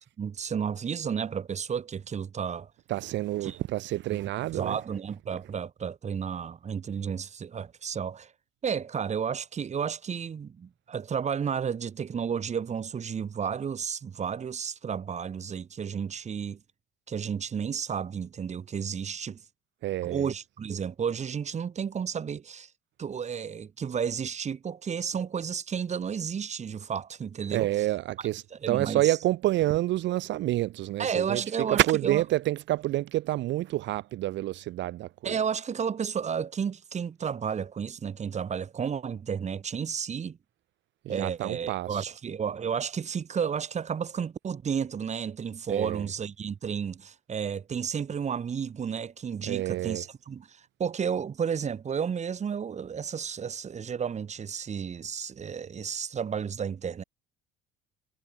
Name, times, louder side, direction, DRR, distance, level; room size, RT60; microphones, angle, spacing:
voice 1, 0.2-2.7 3.4-3.6 4.1-4.2 4.5-8.3 8.6-16.6 17.1-19.4 20.0-22.7 23.0-27.9 28.5-29.2 31.0-32.2 35.2-40.4 41.1-57.0, right 7 dB, 35° right, 3.8 m, -32 dB
voice 2, 2.9-4.8 19.8-20.3 27.5-31.4 31.7-35.3 41.1-42.1 45.7-46.0 49.5-50.0, right 15 dB, 65° right, 2.1 m, -28 dB
cardioid pair, 110°, 20 cm